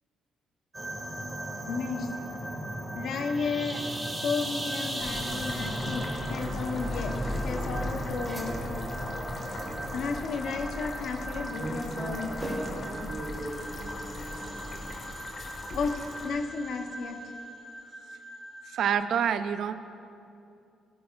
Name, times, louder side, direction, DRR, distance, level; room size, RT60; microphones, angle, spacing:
sound 1, 0.7-18.9, right 1 dB, 15° right, 2.5 m, -38 dB
voice 1, 1.6-2.3 2.9-3.8 4.2-8.6 9.9-12.7 13.0-13.1 15.7-17.2, left 4 dB, 70° left, 4 dB, 1.1 m, -33 dB
sound 2, 5.0-16.3, left 2 dB, 45° left, 2.0 m, -42 dB
sound 3, 6.0-14.9, left 1 dB, ahead, 2.0 m, -39 dB
voice 2, 11.6-14.3, right 2 dB, 45° right, -5 dB, 1.8 m, -38 dB
voice 3, 18.7-19.7, right 8 dB, 70° right, 10 dB, 0.6 m, -27 dB
17.5 x 13.0 x 2.6 m, 2.6 s
cardioid pair, 90°, 0 cm